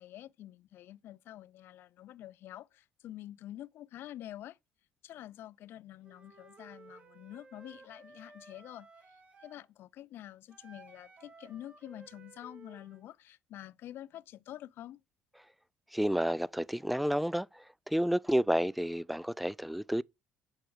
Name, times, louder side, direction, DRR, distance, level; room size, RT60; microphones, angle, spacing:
voice 1, 0.0-4.6 5.0-8.9 9.4-15.0, left 13 dB, 65° left, 0.4 m, -47 dB
Wind instrument woodwind instrument, 6.0-9.6 10.5-13.1, right 3 dB, 30° right, 2.3 m, -56 dB
voice 2, 15.9-17.5 17.9-20.0, equal, ahead, 0.4 m, -30 dB
10.5 x 4.5 x 6.3 m
hypercardioid pair, 60°, 4 cm